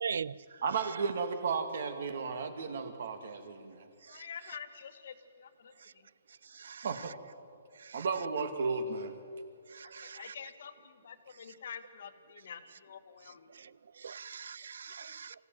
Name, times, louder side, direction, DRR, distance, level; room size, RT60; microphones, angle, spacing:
voice 1, 0.0-0.4 4.1-4.3 6.5-6.9 7.8-8.0 9.7-10.3 13.5-13.7 14.0-14.9, right 6 dB, 65° right, 0.6 m, -40 dB
voice 2, 0.6-3.9 6.6-7.1 7.9-9.1, right 5 dB, 50° right, 2.3 m, -34 dB
voice 3, 4.1-6.1 9.8-13.5, left 7 dB, 50° left, 1.7 m, -48 dB
25.0 x 16.0 x 9.3 m
hypercardioid pair, 180°, 0 cm